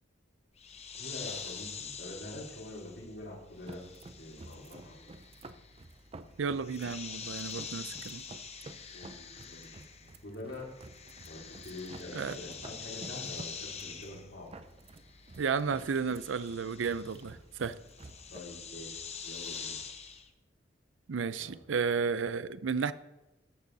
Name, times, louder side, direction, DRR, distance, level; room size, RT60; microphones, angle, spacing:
sound 1, 0.6-10.3 10.5-20.3, left 6 dB, 35° left, 0.8 m, -45 dB
voice 1, 1.0-3.9 4.2-5.1 8.9-9.8 10.2-10.7 11.2-14.5 18.3-19.8 21.4-21.5, left 1 dB, 65° left, 3.4 m, -45 dB
sound 2, 3.5-18.4, right 2 dB, 30° right, 0.5 m, -52 dB
voice 2, 6.4-8.2 12.1-12.4 15.4-17.8 21.1-22.9, right 5 dB, 85° right, 0.5 m, -33 dB
13.0 x 8.3 x 4.0 m
head